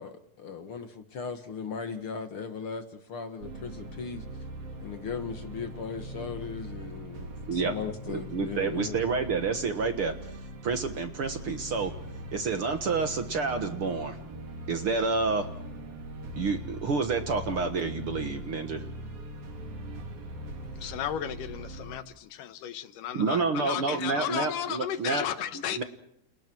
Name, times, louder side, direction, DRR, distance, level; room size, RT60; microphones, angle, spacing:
voice 1, 0.0-4.3 4.8-9.0, left 5 dB, 50° left, 1.8 m, -37 dB
sound 1, 3.4-22.0, right 1 dB, 75° right, 4.9 m, -41 dB
voice 2, 8.1-10.1 10.6-11.9 12.3-14.2 14.7-15.5 16.4-18.8 23.1-25.2 25.8-25.9, right 4 dB, 55° right, 1.6 m, -29 dB
voice 3, 20.7-25.8, left 10 dB, 70° left, 2.6 m, -34 dB
30.0 x 29.5 x 4.6 m
omnidirectional pair, 4.2 m